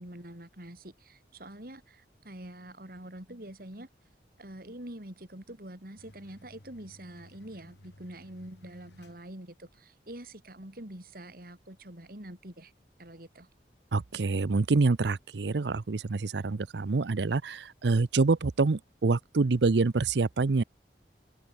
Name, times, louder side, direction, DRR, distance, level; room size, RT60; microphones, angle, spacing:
voice 1, 0.0-3.9 4.4-12.7 13.0-13.5, right 1 dB, 55° right, 4.2 m, -45 dB
sound 1, 6.0-9.8, equal, 80° left, 7.1 m, -57 dB
voice 2, 13.9-20.6, right 3 dB, 75° right, 0.6 m, -26 dB
open air
head